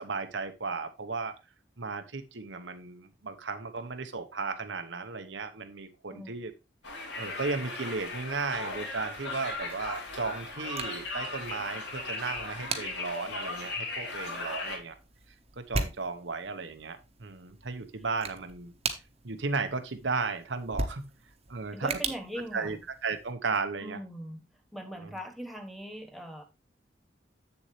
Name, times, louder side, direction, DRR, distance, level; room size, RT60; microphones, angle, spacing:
voice 1, 0.0-1.4 1.8-6.5 7.1-15.0 15.6-18.7 19.2-21.1 21.5-22.0 22.5-22.8 23.0-24.0, right 4 dB, 80° right, 1.0 m, -35 dB
Conversation, 6.8-14.8, left 2 dB, 65° left, 3.1 m, -37 dB
sound 1, 9.6-23.3, right 3 dB, 35° right, 1.1 m, -40 dB
voice 2, 21.7-22.8 23.8-24.4 24.7-26.4, equal, ahead, 1.1 m, -40 dB
7.8 x 7.1 x 3.1 m
head